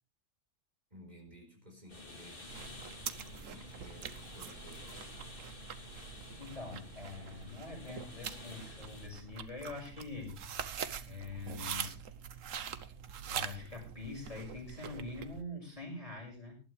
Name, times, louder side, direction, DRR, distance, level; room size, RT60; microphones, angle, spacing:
voice 1, 0.9-4.9, right 1 dB, 35° right, 1 dB, 4.6 m, -56 dB
sound 1, 1.9-9.1, left 2 dB, 45° left, 2.8 m, -51 dB
sound 2, 2.5-15.4, right 8 dB, 90° right, 1.3 m, -44 dB
voice 2, 6.4-10.8 11.1-11.9 13.2-16.6, left 3 dB, 25° left, -1 dB, 6.2 m, -44 dB
19.0 x 12.0 x 3.3 m, 0.35 s
omnidirectional pair, 1.3 m